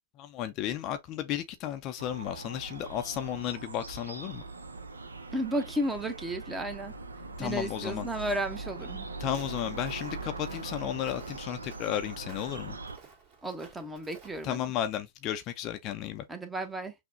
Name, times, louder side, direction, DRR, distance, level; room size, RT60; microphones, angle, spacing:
voice 1, 0.2-4.4 7.4-8.1 9.2-12.8 14.4-16.2, left 11 dB, 35° left, 0.4 m, -34 dB
sound 1, 2.0-13.0, right 3 dB, 85° right, 0.5 m, -41 dB
voice 2, 5.3-6.9 7.4-9.1 13.4-14.6 16.3-16.9, right 1 dB, 10° right, 0.7 m, -33 dB
Walk footsteps, 9.2-14.6, right 5 dB, 40° right, 2.0 m, -53 dB
5.8 x 2.1 x 2.6 m
figure-of-eight pair, 105°, 0 cm